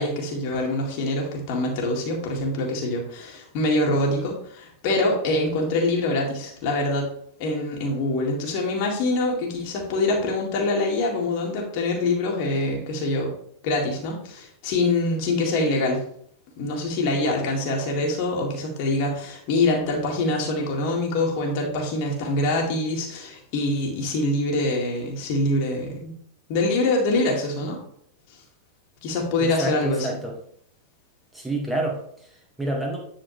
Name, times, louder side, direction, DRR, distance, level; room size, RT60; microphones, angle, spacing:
voice 1, 0.0-7.1 7.4-13.3 13.6-16.0 16.6-26.1 26.5-27.8 29.0-30.1, left 2 dB, 45° left, -1 dB, 2.1 m, -24 dB
voice 2, 29.4-30.4 31.3-33.0, right 2 dB, 5° right, -1 dB, 2.0 m, -29 dB
10.0 x 4.3 x 3.3 m, 0.65 s
figure-of-eight pair, 90°, 0 cm